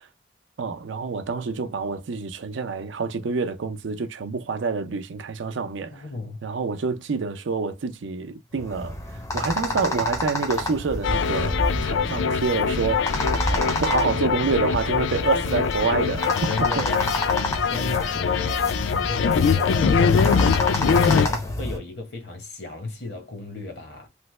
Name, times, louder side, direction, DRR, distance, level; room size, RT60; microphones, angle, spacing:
voice 1, 0.6-6.0 6.4-9.0 9.3-16.7, right 4 dB, 85° right, 0.5 m, -27 dB
voice 2, 5.9-6.4 16.5-24.1, left 2 dB, 60° left, 0.9 m, -35 dB
sound 1, 8.6-21.8, left 1 dB, 15° left, 0.5 m, -29 dB
sound 2, 11.0-21.3, left 6 dB, 80° left, 0.3 m, -23 dB
3.2 x 2.1 x 3.1 m
head